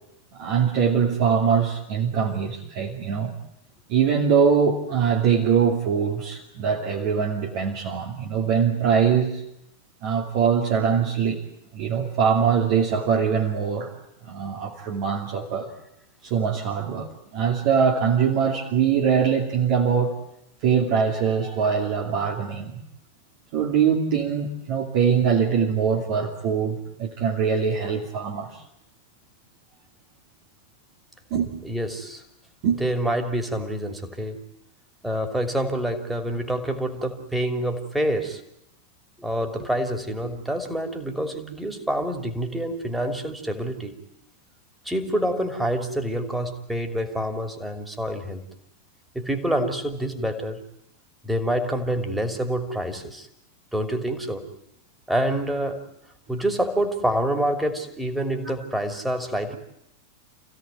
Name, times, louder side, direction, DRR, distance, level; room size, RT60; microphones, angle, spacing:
voice 1, 0.3-3.3 3.9-9.4 10.0-11.4 11.7-13.9 14.2-15.7 16.2-20.2 20.6-22.7 23.5-28.6 31.3-31.5 32.6-32.8, right 7 dB, 45° right, 0 dB, 2.6 m, -22 dB
voice 2, 31.6-32.2 32.8-34.4 35.0-38.4 39.2-44.0 44.8-48.4 49.1-50.6 51.2-53.3 53.7-54.5 55.1-55.9 56.3-59.6, right 1 dB, 5° right, 5 dB, 3.0 m, -27 dB
28.5 x 16.5 x 9.2 m, 0.81 s
figure-of-eight pair, 90°, 0 cm